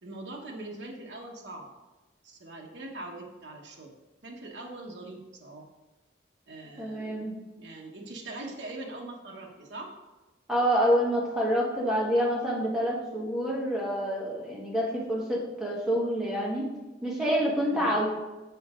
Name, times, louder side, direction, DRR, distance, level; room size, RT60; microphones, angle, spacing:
voice 1, 0.0-1.7 2.2-3.9 4.2-5.7 6.5-7.3 7.6-10.0 17.7-18.0, right 2 dB, 65° right, 0 dB, 1.1 m, -42 dB
voice 2, 6.8-7.3 10.5-16.6 17.0-18.1, equal, 5° right, -5 dB, 1.4 m, -27 dB
6.8 x 5.3 x 3.7 m, 1.1 s
head